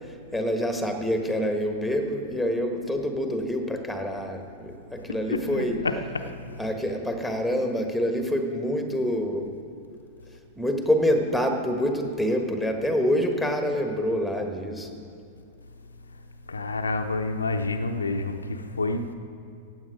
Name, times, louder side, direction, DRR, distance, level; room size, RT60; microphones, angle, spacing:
voice 1, 0.1-5.8 6.6-9.5 10.6-14.9, equal, ahead, 4 dB, 1.4 m, -26 dB
voice 2, 5.3-6.3 16.5-19.1, left 3 dB, 75° left, 6 dB, 0.7 m, -28 dB
15.5 x 9.1 x 5.0 m, 2.4 s
figure-of-eight pair, 95°, 0 cm